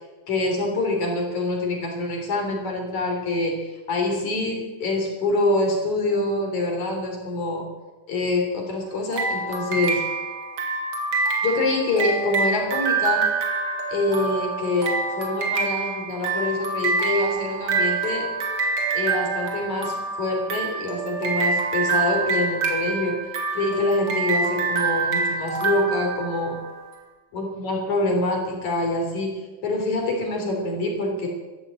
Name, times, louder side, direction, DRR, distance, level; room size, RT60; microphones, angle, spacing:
voice 1, 0.3-3.6 3.9-7.6 8.1-10.0 11.4-13.2 13.9-18.3 18.9-23.2 23.5-26.5 27.3-29.3 29.6-31.3, left 2 dB, 55° left, 1 dB, 4.7 m, -25 dB
sound 1, 9.1-26.8, right 4 dB, 45° right, 2.8 m, -26 dB
14.5 x 11.5 x 8.9 m, 1.2 s
omnidirectional pair, 4.0 m